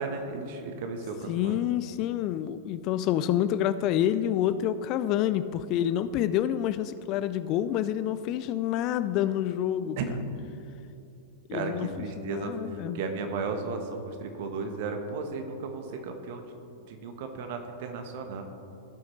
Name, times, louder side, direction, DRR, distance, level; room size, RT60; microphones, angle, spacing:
voice 1, 0.0-1.5 10.0-10.1 11.5-16.4 16.9-18.4, right 4 dB, 50° right, 5 dB, 1.1 m, -34 dB
voice 2, 1.3-10.0 11.5-13.0, left 11 dB, 40° left, 14 dB, 0.3 m, -28 dB
16.0 x 6.2 x 3.2 m, 2.8 s
figure-of-eight pair, 100°, 0 cm